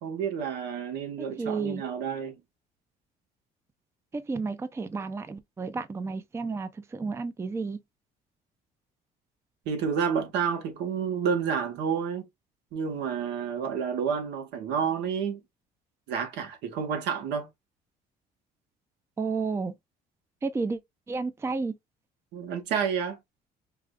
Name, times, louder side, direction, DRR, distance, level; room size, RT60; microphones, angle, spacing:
voice 1, 0.0-2.4 9.6-12.3 12.7-15.4 16.1-17.5 22.3-23.2, right 7 dB, 85° right, 1.2 m, -29 dB
voice 2, 1.4-1.8 4.1-7.8 19.2-19.7 20.4-20.8 21.1-21.7, right 4 dB, 15° right, 0.4 m, -31 dB
4.7 x 2.4 x 2.3 m
cardioid pair, 110°, 17 cm